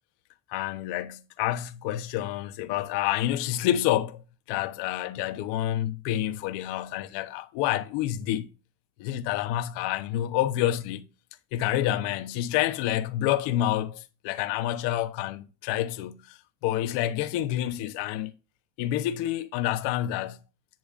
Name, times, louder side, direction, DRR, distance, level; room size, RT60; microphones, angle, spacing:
voice 1, 0.5-8.5 9.0-11.1 11.5-18.3 18.8-20.4, left 13 dB, 80° left, 1.1 m, -28 dB
10.5 x 8.7 x 2.5 m
cardioid pair, 160°, 42 cm